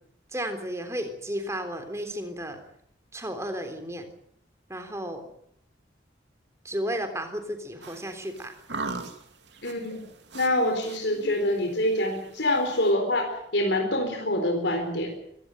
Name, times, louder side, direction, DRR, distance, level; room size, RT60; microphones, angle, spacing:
voice 1, 0.3-2.6 3.1-4.1 4.7-5.3 6.6-8.6, equal, 15° right, 7 dB, 3.5 m, -33 dB
sound 1, 7.8-12.9, right 3 dB, 70° right, 2.8 m, -40 dB
voice 2, 9.6-10.0 10.3-15.1, left 1 dB, 70° left, 4 dB, 4.1 m, -25 dB
23.5 x 18.0 x 7.9 m, 0.71 s
head